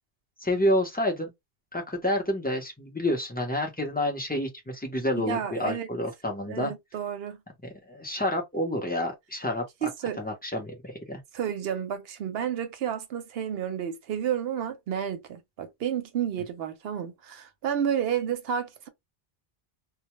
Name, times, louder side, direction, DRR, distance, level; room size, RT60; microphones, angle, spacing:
voice 1, 0.4-1.3 1.7-6.7 7.9-9.9 10.2-11.2, left 1 dB, 10° left, 0.5 m, -29 dB
voice 2, 5.1-5.9 6.5-7.4 9.8-10.2 11.3-18.9, right 9 dB, 70° right, 0.8 m, -31 dB
2.1 x 2.1 x 2.9 m
omnidirectional pair, 1.1 m